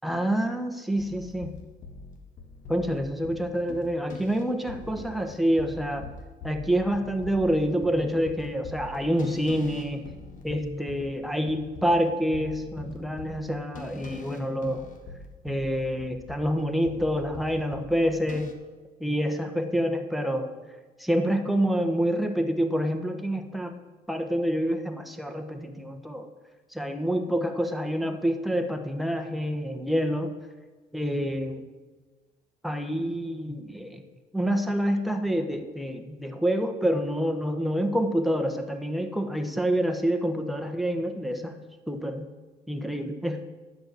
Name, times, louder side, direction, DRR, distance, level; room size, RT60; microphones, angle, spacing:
voice 1, 0.0-1.5 2.7-6.1 6.4-10.0 10.4-14.9 15.4-18.5 19.0-20.5 21.0-23.8 24.1-26.3 26.7-30.3 30.9-31.6 32.6-34.0 34.3-41.6 41.9-42.3 42.7-43.4, equal, ahead, 5 dB, 1.2 m, -27 dB
sound 1, 1.0-18.5, left 4 dB, 50° left, 1.6 m, -44 dB
10.0 x 6.7 x 9.2 m, 1.3 s
cardioid pair, 110°, 17 cm